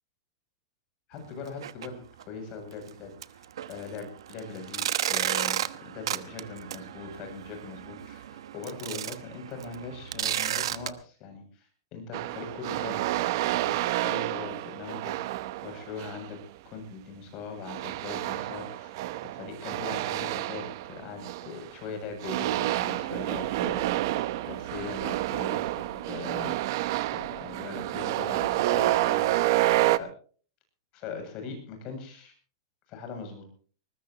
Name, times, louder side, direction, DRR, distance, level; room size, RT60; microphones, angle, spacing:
voice 1, 1.1-13.2 13.5-16.4 16.6-19.0 19.3-24.2 24.4-26.6 27.1-29.6 29.9-30.1 30.9-32.3 32.9-33.5, left 4 dB, 35° left, 5 dB, 7.6 m, -41 dB
sound 1, 1.5-1.9 2.2-2.3 2.8-2.9 3.2-10.9, right 11 dB, 85° right, 1.1 m, -33 dB
sound 2, 12.1-16.3 17.7-21.8 22.2-30.0, right 16 dB, 55° right, 1.0 m, -29 dB
20.5 x 20.5 x 3.0 m, 0.42 s
supercardioid pair, 160°, 3 cm